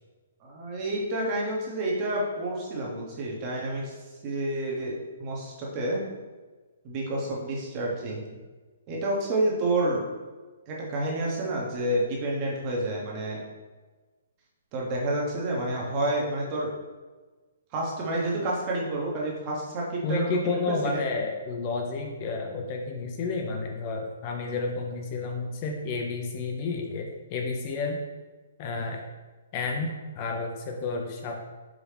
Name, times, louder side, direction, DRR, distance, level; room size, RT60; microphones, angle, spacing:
voice 1, 0.4-4.0 4.2-6.0 6.8-8.2 8.9-10.0 10.7-13.4 14.7-16.7 17.7-21.1, right 1 dB, 25° right, -3 dB, 0.9 m, -29 dB
voice 2, 20.0-28.0 28.6-29.0 29.5-31.4, left 3 dB, 30° left, 2 dB, 0.4 m, -31 dB
4.9 x 2.6 x 3.3 m, 1.3 s
hypercardioid pair, 160°, 0 cm